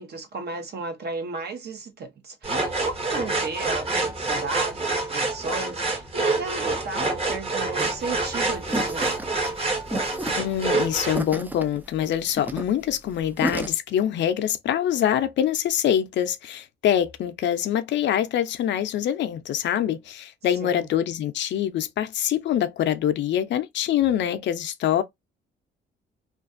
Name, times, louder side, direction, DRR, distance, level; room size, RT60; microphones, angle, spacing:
voice 1, 0.0-9.2 20.6-20.9, right 3 dB, 55° right, 0.9 m, -34 dB
sound 1, 2.4-11.2, right 3 dB, 30° right, 1.0 m, -27 dB
sound 2, 7.8-13.7, right 1 dB, 10° right, 0.4 m, -33 dB
voice 2, 10.4-25.0, left 10 dB, 65° left, 0.5 m, -24 dB
2.4 x 2.3 x 2.5 m
cardioid pair, 90°, 20 cm